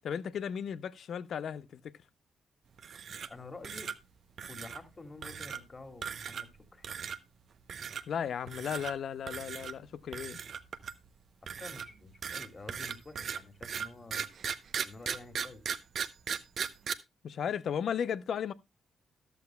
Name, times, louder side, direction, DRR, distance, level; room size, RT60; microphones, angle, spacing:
voice 1, 0.0-1.9 8.1-10.4 17.2-18.5, left 8 dB, 70° left, 0.6 m, -35 dB
sound 1, 2.8-3.4 3.6-4.0 4.4-4.8 5.2-5.6 6.0-6.6 6.8-7.2 7.7-8.0 8.5-8.9 9.3-9.7 10.1-11.1 11.5-16.9, right 7 dB, 65° right, 0.7 m, -37 dB
voice 2, 3.3-3.9 4.5-6.5 6.7-6.9 11.4-14.3 14.8-15.6, left 3 dB, 35° left, 2.5 m, -49 dB
13.5 x 11.5 x 2.3 m
supercardioid pair, 60°, 0 cm